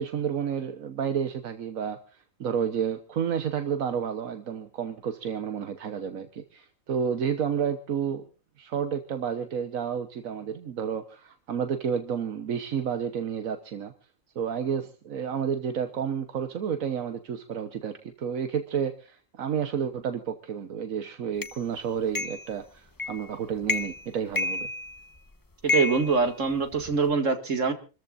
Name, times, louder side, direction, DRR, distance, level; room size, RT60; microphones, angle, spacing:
voice 1, 0.0-8.2 8.6-13.9 14.3-24.7, right 7 dB, 80° right, 8 dB, 1.5 m, -30 dB
sound 1, 21.4-21.5 22.1-22.5 23.0-23.3 23.6-24.0 24.4-25.2 25.7-26.9, left 3 dB, 20° left, 0.8 m, -30 dB
voice 2, 25.6-27.7, right 4 dB, 65° right, 6 dB, 2.5 m, -24 dB
28.0 x 14.0 x 2.6 m, 0.34 s
omnidirectional pair, 1.4 m